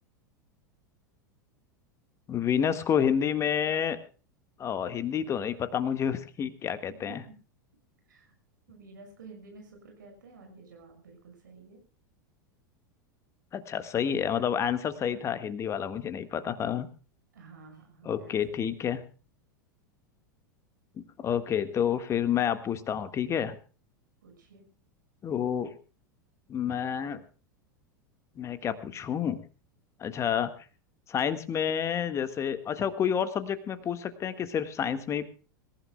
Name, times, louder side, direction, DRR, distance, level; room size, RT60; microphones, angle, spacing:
voice 1, 2.3-4.0 4.6-7.2 13.5-16.9 18.0-19.0 21.2-23.5 25.2-25.7 26.5-27.2 28.4-29.4 30.0-30.5 31.1-35.2, left 8 dB, 25° left, 11 dB, 1.6 m, -29 dB
voice 2, 6.9-7.3 8.0-8.3 8.7-11.8 17.3-19.0 24.2-24.7, right 4 dB, 65° right, 3 dB, 6.1 m, -51 dB
25.5 x 15.0 x 2.2 m, 0.38 s
figure-of-eight pair, 85°, 11 cm